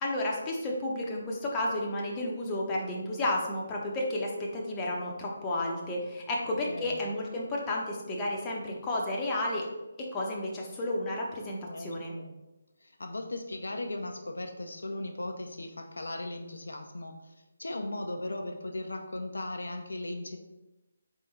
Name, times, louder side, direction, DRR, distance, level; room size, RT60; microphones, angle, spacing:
voice 1, 0.0-9.7 10.0-12.1, left 1 dB, 15° left, -2 dB, 0.7 m, -32 dB
voice 2, 6.7-7.0 11.7-12.3 12.8-17.3 17.6-20.4, left 2 dB, 65° left, 4 dB, 0.5 m, -37 dB
4.5 x 3.5 x 3.1 m, 1.0 s
figure-of-eight pair, 150°, 0 cm